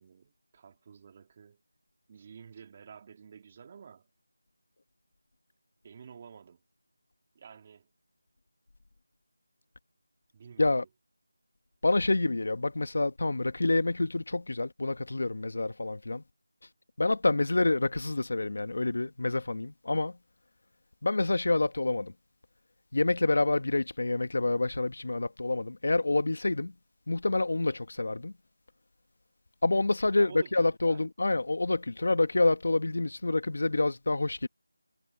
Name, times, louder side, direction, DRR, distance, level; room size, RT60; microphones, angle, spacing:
voice 1, 0.0-1.6 2.1-4.1 5.8-6.6 7.3-7.9 10.3-10.9 30.2-31.1, right 6 dB, 20° right, 2.2 m, -50 dB
voice 2, 11.8-16.2 17.0-20.2 21.0-22.1 22.9-26.7 27.1-28.3 29.6-34.5, left 2 dB, 55° left, 1.3 m, -27 dB
figure-of-eight pair, 175°, 0 cm